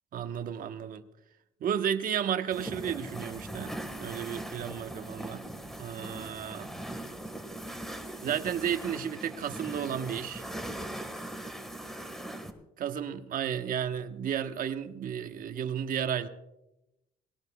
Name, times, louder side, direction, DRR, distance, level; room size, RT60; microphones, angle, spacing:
voice 1, 0.1-1.0 1.6-5.4 5.8-6.7 8.2-10.4 12.8-16.3, right 9 dB, 55° right, 1.2 m, -33 dB
sound 1, 2.5-12.5, right 1 dB, ahead, 1.6 m, -40 dB
21.0 x 17.5 x 2.3 m
cardioid pair, 110°, 17 cm